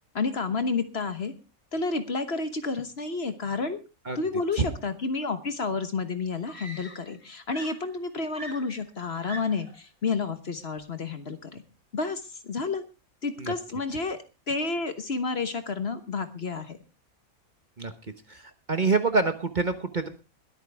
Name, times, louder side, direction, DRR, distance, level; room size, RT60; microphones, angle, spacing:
voice 1, 0.1-1.3 1.7-3.8 4.1-11.6 11.9-12.8 13.2-14.2 14.5-16.8, left 4 dB, 45° left, 10 dB, 1.4 m, -30 dB
Screaming, 6.5-7.2 7.5-9.8 10.8-11.0, right 1 dB, 15° right, 3.2 m, -44 dB
voice 2, 18.3-20.1, right 4 dB, 35° right, 9 dB, 1.1 m, -26 dB
21.5 x 9.1 x 3.4 m, 0.28 s
omnidirectional pair, 1.5 m